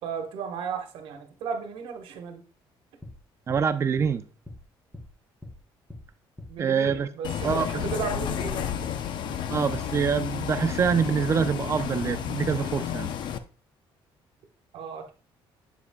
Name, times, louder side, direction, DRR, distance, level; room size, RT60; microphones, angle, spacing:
voice 1, 0.0-2.4 6.5-8.7 14.7-15.1, right 6 dB, 70° right, 1.2 m, -34 dB
sound 1, 3.0-3.2 3.5-3.7 4.0-4.1 4.5-4.6 4.9-5.1 5.4-5.6 5.9-6.1 6.4-6.5 6.8-7.0 7.3-7.5 7.8-8.0 8.3-8.5 8.8-8.9 9.3-9.4 9.7-9.9 10.2-10.4, left 1 dB, 5° left, 0.8 m, -42 dB
voice 2, 3.5-4.3 6.6-7.1 7.4-7.8 9.5-13.1, right 6 dB, 30° right, 0.5 m, -25 dB
Bus, 7.2-13.4, left 9 dB, 55° left, 0.5 m, -31 dB
8.1 x 7.4 x 2.2 m
cardioid pair, 150°, 9 cm